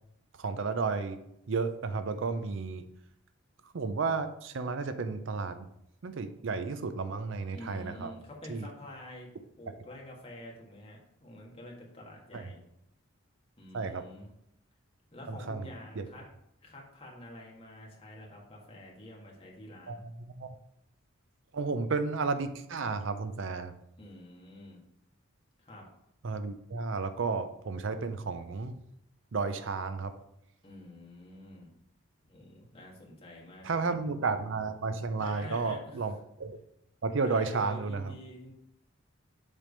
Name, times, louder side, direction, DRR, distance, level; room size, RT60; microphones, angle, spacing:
voice 1, 0.4-1.2 1.5-2.8 3.7-5.7 6.0-8.1 8.5-8.7 12.3-12.4 13.7-14.1 15.3-16.0 19.9-20.5 21.5-23.7 26.2-28.8 29.3-30.1 33.6-36.1 36.4-36.6 37.0-38.1, right 4 dB, 60° right, 10 dB, 0.5 m, -32 dB
voice 2, 7.5-9.3 9.6-12.6 13.6-14.3 15.1-16.3 16.6-20.0 24.0-24.8 25.6-25.9 30.6-31.7 32.3-33.9 35.2-36.0 37.2-38.5, left 1 dB, 25° left, -2 dB, 1.5 m, -48 dB
7.3 x 3.4 x 5.2 m, 0.79 s
head